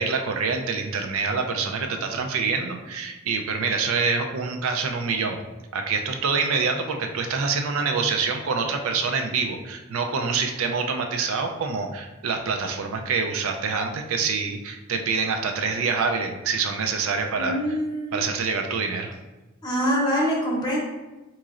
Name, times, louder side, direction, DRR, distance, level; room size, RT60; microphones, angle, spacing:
voice 1, 0.0-5.4 5.7-17.8 18.1-19.1, right 5 dB, 75° right, 4 dB, 0.4 m, -26 dB
voice 2, 17.4-18.2 19.6-20.8, equal, 20° left, -3 dB, 0.8 m, -24 dB
3.7 x 3.0 x 2.4 m, 1.1 s
head